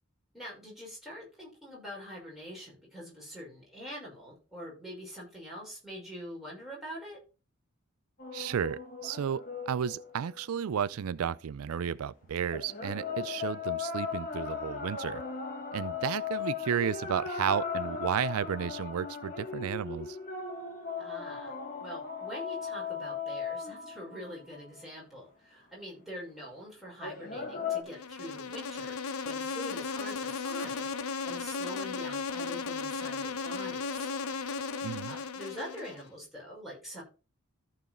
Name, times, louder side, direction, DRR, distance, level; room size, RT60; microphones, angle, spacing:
voice 1, 0.3-7.2 21.0-34.1 35.1-37.0, equal, ahead, 5.7 m, -44 dB
sound 1, 8.2-10.7 12.5-24.8 27.0-27.8, left 6 dB, 40° left, 1.8 m, -37 dB
voice 2, 8.3-15.2 15.7-20.2 34.8-35.2, right 8 dB, 80° right, 0.4 m, -33 dB
Insect, 27.9-36.1, left 4 dB, 85° left, 0.9 m, -36 dB
14.0 x 4.8 x 4.4 m
head